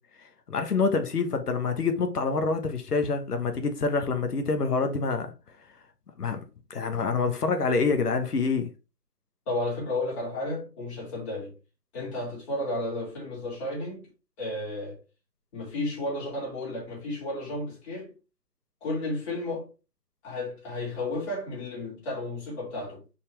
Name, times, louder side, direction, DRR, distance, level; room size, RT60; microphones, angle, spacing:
voice 1, 0.5-5.3 6.2-6.4 6.7-8.7, left 4 dB, 65° left, 1.3 m, -26 dB
voice 2, 9.5-11.5 11.9-14.0 14.4-15.0 15.5-18.1 18.8-19.7 20.2-23.0, left 2 dB, 20° left, 2.9 m, -32 dB
6.0 x 4.7 x 3.4 m
figure-of-eight pair, 160°, 49 cm